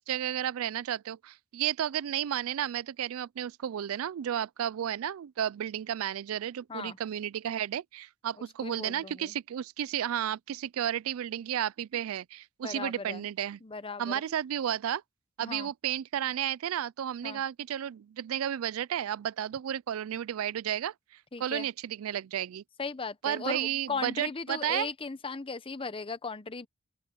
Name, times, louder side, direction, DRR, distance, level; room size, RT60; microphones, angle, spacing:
voice 1, 0.0-13.6 14.0-15.0 15.4-20.9 21.4-22.6 23.2-24.9, right 10 dB, 85° right, 0.4 m, -32 dB
voice 2, 8.6-9.3 12.6-13.3 13.6-14.2 15.4-15.7 17.2-17.4 21.3-21.7 22.8-26.7, left 4 dB, 25° left, 0.8 m, -37 dB
open air
head